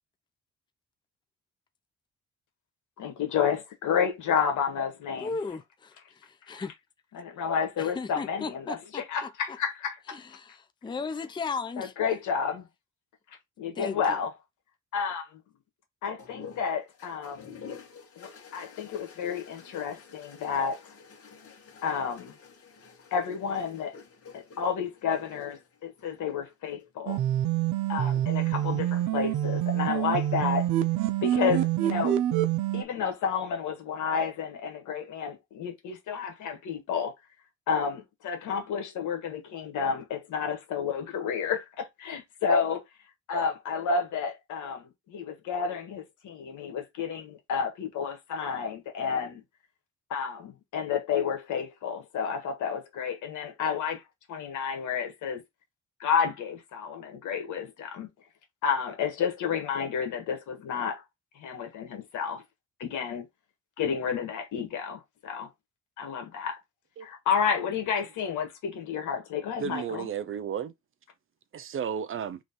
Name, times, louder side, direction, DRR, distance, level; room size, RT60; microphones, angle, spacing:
voice 1, 3.0-5.3 6.5-6.6 7.1-10.2 11.8-12.6 13.6-14.3 14.9-15.4 16.0-17.4 18.2-20.8 21.8-22.3 23.1-24.0 24.3-27.2 27.9-30.7 31.2-32.2 32.7-37.1 37.7-42.8 43.3-49.4 50.1-54.0 54.3-55.4 56.0-58.1 58.6-61.0 61.3-62.4 62.8-63.3 63.8-65.5 66.0-66.6 67.0-70.1, left 6 dB, 80° left, 1.5 m, -31 dB
voice 2, 5.2-6.7 7.8-9.6 10.1-11.9 13.8-14.2, left 4 dB, 15° left, 0.5 m, -36 dB
sound 1, 16.2-26.9 28.0-28.6, left 6 dB, 50° left, 1.6 m, -49 dB
sound 2, 27.1-32.8, right 12 dB, 90° right, 0.6 m, -26 dB
voice 3, 69.6-70.7 71.5-72.4, right 7 dB, 45° right, 0.5 m, -33 dB
3.2 x 3.1 x 4.1 m
cardioid pair, 90°, 30 cm